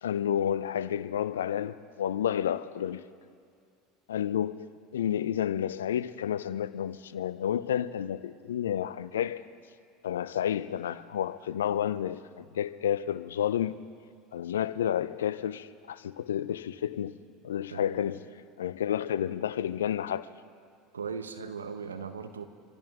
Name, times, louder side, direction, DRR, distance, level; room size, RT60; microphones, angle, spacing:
voice 1, 0.0-3.0 4.1-4.7 4.9-9.4 10.0-13.8 14.3-17.2 17.4-18.2 18.6-20.3, left 10 dB, 80° left, 0.5 m, -30 dB
voice 2, 17.7-18.1 20.9-22.4, right 5 dB, 85° right, 1.0 m, -38 dB
26.0 x 14.5 x 3.6 m
hypercardioid pair, 75°, 0 cm